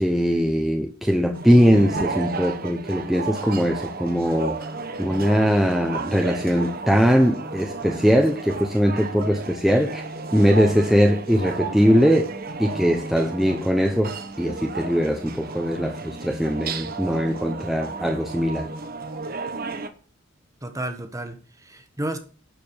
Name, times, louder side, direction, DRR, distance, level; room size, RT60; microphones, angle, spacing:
voice 1, 0.0-4.7 5.0-10.0 10.3-12.3 12.6-18.7, equal, ahead, 1 dB, 1.0 m, -21 dB
sound 1, 1.3-19.9, right 4 dB, 50° right, 1.1 m, -33 dB
voice 2, 20.6-22.2, right 1 dB, 15° right, 7 dB, 1.5 m, -32 dB
12.0 x 5.2 x 7.1 m, 0.40 s
head